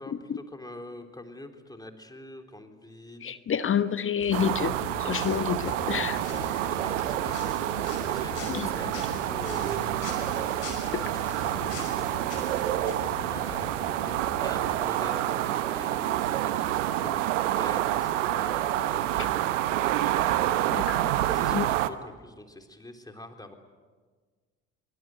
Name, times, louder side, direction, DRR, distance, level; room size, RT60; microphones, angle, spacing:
voice 1, 0.0-3.4 6.3-12.0 12.9-20.6 21.3-23.5, left 1 dB, 10° left, 5 dB, 3.7 m, -44 dB
voice 2, 3.2-6.2 8.5-8.7 10.9-11.0 20.7-21.1 21.5-21.7, left 8 dB, 35° left, 13 dB, 1.1 m, -28 dB
sound 1, 4.2-14.7, left 4 dB, 75° left, 5.8 m, -41 dB
sound 2, 4.3-21.9, right 13 dB, 75° right, 1.1 m, -28 dB
25.0 x 23.5 x 9.3 m, 1.5 s
figure-of-eight pair, 55°, 37 cm